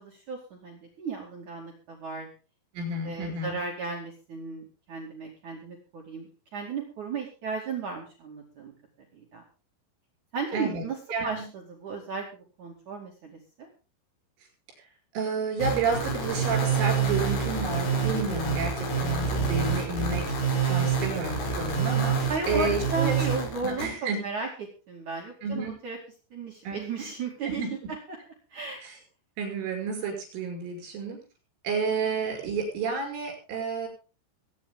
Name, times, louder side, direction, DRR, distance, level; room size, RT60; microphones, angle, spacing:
voice 1, 0.0-2.3 3.0-8.7 9.1-9.4 10.3-11.0 11.2-13.7 22.3-23.9 24.2-26.0 26.3-27.6 28.1-28.2 28.5-28.8, right 4 dB, 45° right, -1 dB, 3.2 m, -35 dB
voice 2, 2.7-3.6 10.5-10.8 11.1-11.4 14.8-14.9 15.1-23.2 23.6-24.2 25.4-25.7 26.6-27.1 27.4-27.7 28.8-29.0 29.4-31.2 31.6-33.9, right 4 dB, 75° right, 3 dB, 8.5 m, -31 dB
sound 1, 15.6-23.9, right 5 dB, 90° left, 7.1 m, -27 dB
23.0 x 9.9 x 3.8 m, 0.35 s
omnidirectional pair, 5.7 m